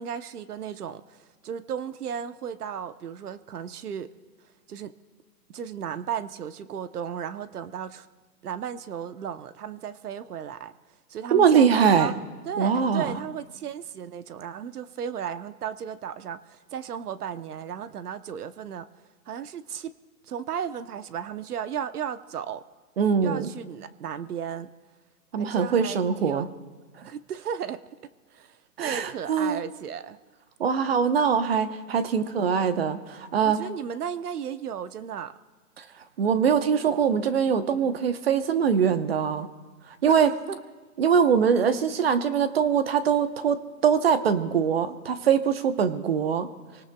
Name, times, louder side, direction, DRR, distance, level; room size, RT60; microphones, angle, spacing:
voice 1, 0.0-4.1 4.7-4.9 5.5-8.1 8.4-10.7 11.1-12.2 12.5-18.9 19.3-19.9 20.2-22.6 23.2-24.7 25.4-26.5 27.0-27.8 28.3-30.2 31.9-32.2 33.4-35.3 40.1-40.2 40.5-40.6, right 8 dB, 70° right, 12 dB, 1.0 m, -35 dB
voice 2, 11.3-12.1 12.6-13.2 23.0-23.5 25.3-26.5 28.8-29.6 30.6-33.7 35.8-35.9 36.2-39.5 40.0-40.3 41.0-46.5, right 7 dB, 40° right, 10 dB, 1.0 m, -23 dB
27.5 x 18.5 x 2.3 m, 1.4 s
hypercardioid pair, 170°, 47 cm